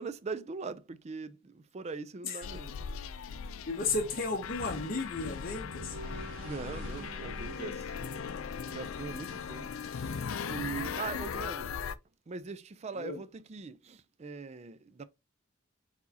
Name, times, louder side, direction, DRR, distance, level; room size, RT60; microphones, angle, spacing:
voice 1, 0.0-3.1 6.4-7.9 8.4-11.8 12.3-15.0, right 4 dB, 35° right, 0.4 m, -41 dB
sound 1, 2.4-12.0, left 6 dB, 85° left, 0.4 m, -39 dB
voice 2, 3.7-6.0 11.1-11.4 13.0-13.2, left 3 dB, 45° left, 0.8 m, -34 dB
sound 2, 5.6-9.9, right 2 dB, 85° right, 2.4 m, -48 dB
4.6 x 4.3 x 2.7 m
head